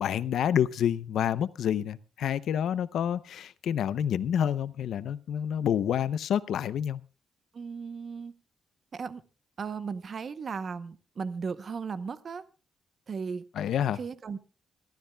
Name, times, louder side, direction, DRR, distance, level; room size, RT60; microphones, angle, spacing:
voice 1, 0.0-7.0 13.6-14.0, left 9 dB, 70° left, 0.6 m, -28 dB
voice 2, 7.5-8.3 8.9-9.2 9.6-12.4 13.1-13.5 13.9-14.4, right 5 dB, 40° right, 0.8 m, -36 dB
26.5 x 13.0 x 2.3 m
wide cardioid pair, 170°, 0 cm